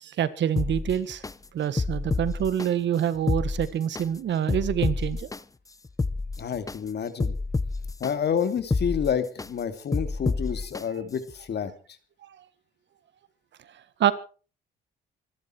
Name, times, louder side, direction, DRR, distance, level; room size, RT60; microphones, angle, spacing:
voice 1, 0.0-1.2 1.5-5.3 14.0-14.1, right 10 dB, 65° right, 1.6 m, -26 dB
sound 1, 0.6-1.3 1.8-2.7 3.1-4.0 4.5-5.4 5.8-6.8 7.2-8.1 8.6-9.5 9.9-10.8 11.3-11.4, left 3 dB, 15° left, 0.7 m, -28 dB
voice 2, 6.4-7.3 8.0-11.7, left 7 dB, 60° left, 2.7 m, -29 dB
25.0 x 11.5 x 4.6 m
cardioid pair, 90°, 20 cm